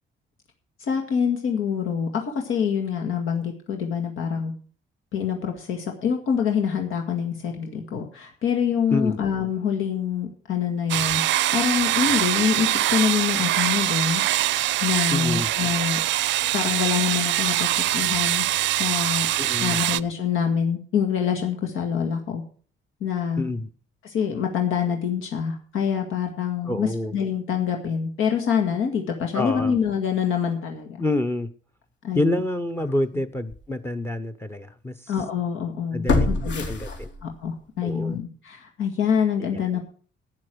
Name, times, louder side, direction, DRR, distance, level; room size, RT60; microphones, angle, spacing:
voice 1, 0.8-4.5 5.1-11.2 11.5-14.2 14.8-16.0 16.5-18.4 18.8-19.3 19.6-22.4 23.0-23.4 24.0-31.0 32.0-32.4 35.1-36.6 37.2-39.8, left 7 dB, 85° left, 3 dB, 2.0 m, -25 dB
sound 1, 10.9-20.0, right 14 dB, 70° right, 0.5 m, -23 dB
voice 2, 15.1-15.5 19.4-19.8 23.4-23.7 26.7-27.1 29.3-29.7 31.0-31.5 32.1-35.1 35.9-36.3 36.7-37.1 37.8-38.2 39.5-39.6, left 1 dB, 10° left, 11 dB, 0.7 m, -27 dB
sound 2, 32.8-32.9 33.5-33.6 36.1-37.5 37.9-38.0, left 3 dB, 65° left, 3.1 m, -25 dB
11.5 x 9.7 x 6.2 m, 0.43 s
cardioid pair, 150°, 20 cm